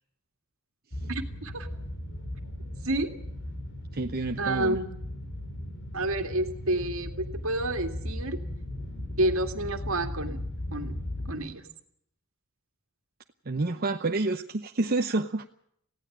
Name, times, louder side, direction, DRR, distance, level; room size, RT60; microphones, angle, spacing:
sound 1, 0.9-11.4, left 1 dB, 60° left, 5.4 m, -37 dB
voice 1, 1.1-1.7 2.8-3.1 4.4-4.8 5.9-8.4 9.2-10.4 10.7-11.0 11.3-11.6, right 1 dB, 70° right, 7 dB, 2.2 m, -29 dB
voice 2, 3.9-4.8 13.5-15.4, right 2 dB, 45° right, 5 dB, 0.9 m, -28 dB
19.5 x 16.5 x 8.7 m, 0.69 s
head